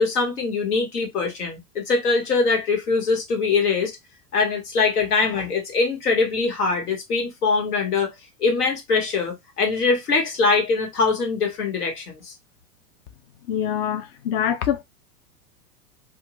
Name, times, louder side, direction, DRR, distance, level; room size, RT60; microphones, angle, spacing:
voice 1, 0.0-4.0 4.3-8.1 8.4-12.3, left 4 dB, 80° left, 1.3 m, -22 dB
voice 2, 13.5-14.8, left 9 dB, 40° left, 0.4 m, -24 dB
2.7 x 2.3 x 2.7 m
hypercardioid pair, 100°, 45 cm